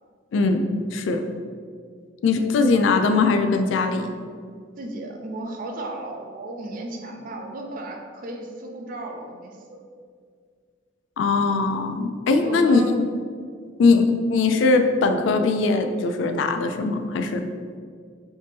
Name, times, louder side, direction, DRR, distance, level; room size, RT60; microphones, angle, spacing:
voice 1, 0.3-0.6 0.9-1.2 2.2-4.1 11.2-12.8 13.8-14.0 14.3-17.5, left 4 dB, 80° left, 6 dB, 0.3 m, -20 dB
voice 2, 2.2-3.0 4.8-9.8 12.4-13.0, right 1 dB, 50° right, 2 dB, 0.4 m, -35 dB
3.4 x 2.8 x 3.2 m, 2.1 s
head